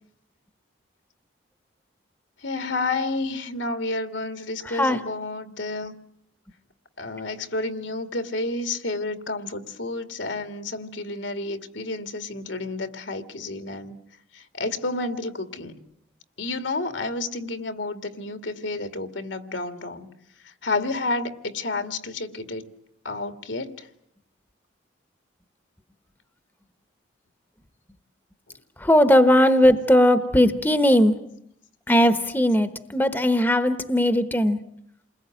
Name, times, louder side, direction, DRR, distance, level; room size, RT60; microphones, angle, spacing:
voice 1, 2.4-5.9 7.0-14.0 14.3-15.8 16.4-20.1 20.6-22.6 23.0-23.9, left 2 dB, 70° left, 9 dB, 2.2 m, -30 dB
voice 2, 28.8-31.1 31.9-34.6, equal, 10° left, 11 dB, 1.0 m, -18 dB
29.0 x 21.0 x 9.3 m, 0.74 s
head